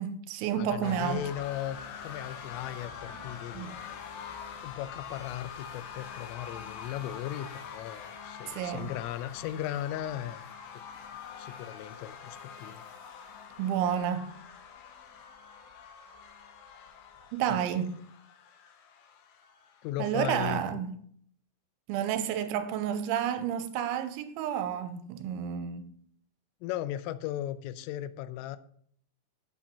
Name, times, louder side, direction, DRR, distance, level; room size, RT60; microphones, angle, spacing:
voice 1, 0.0-1.3 3.5-3.8 8.5-8.9 13.6-14.4 17.3-18.0 20.0-21.0 21.9-25.9, right 9 dB, 80° right, 3.0 m, -31 dB
voice 2, 0.6-3.7 4.6-10.5 11.4-12.8 17.5-17.6 19.8-20.6 26.6-28.6, left 12 dB, 90° left, 3.3 m, -37 dB
sound 1, 0.8-19.9, left 6 dB, 70° left, 3.1 m, -45 dB
8.8 x 8.5 x 5.8 m
omnidirectional pair, 5.7 m